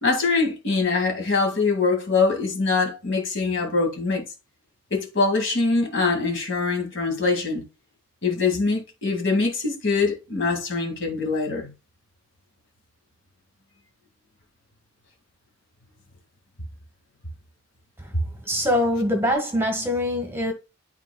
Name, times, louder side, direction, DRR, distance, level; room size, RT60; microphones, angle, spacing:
voice 1, 0.0-4.2 4.9-7.7 8.2-11.7, left 4 dB, 55° left, 2.2 m, -23 dB
voice 2, 18.4-20.5, left 1 dB, 10° right, 1.4 m, -23 dB
12.5 x 4.2 x 2.3 m
head